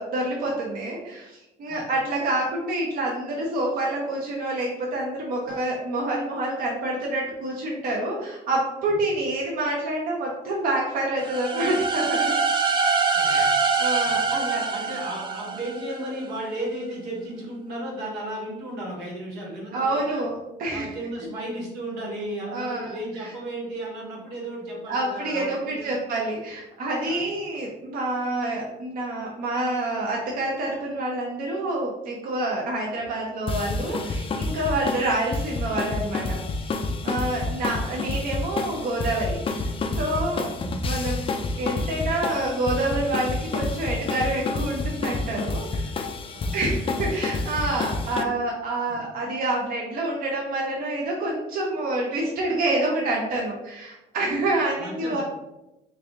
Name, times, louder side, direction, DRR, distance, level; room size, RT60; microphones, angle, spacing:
voice 1, 0.0-12.3 13.2-13.5 13.8-14.6 19.7-20.9 22.5-22.9 23.2-23.3 24.9-36.7 37.0-40.4 40.8-41.2 41.6-45.9 46.5-55.2, right 2 dB, 60° right, -3 dB, 0.7 m, -27 dB
sound 1, 11.2-16.0, right 4 dB, 30° right, 0.5 m, -24 dB
voice 2, 14.7-20.2 20.7-25.9 27.1-27.2 34.7-34.8 40.3-40.5 46.3-46.6 47.6-47.7 48.9-49.0 54.8-55.2, right 1 dB, 90° right, -4 dB, 1.5 m, -34 dB
sound 2, 33.5-48.2, left 3 dB, 30° left, 0.4 m, -29 dB
3.3 x 2.5 x 3.6 m, 0.94 s
cardioid pair, 110°, 17 cm